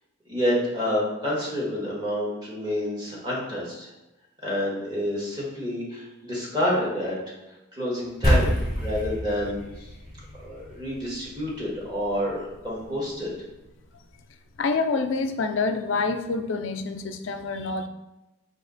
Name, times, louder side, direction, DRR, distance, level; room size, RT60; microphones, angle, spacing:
voice 1, 0.3-3.9 4.4-7.2 7.7-9.9 10.4-13.3, equal, 20° right, -5 dB, 1.4 m, -28 dB
sound 1, 8.2-12.8, equal, 5° right, 1.2 m, -28 dB
voice 2, 14.6-17.9, left 4 dB, 70° left, 7 dB, 0.4 m, -27 dB
4.9 x 2.8 x 3.9 m, 0.99 s
head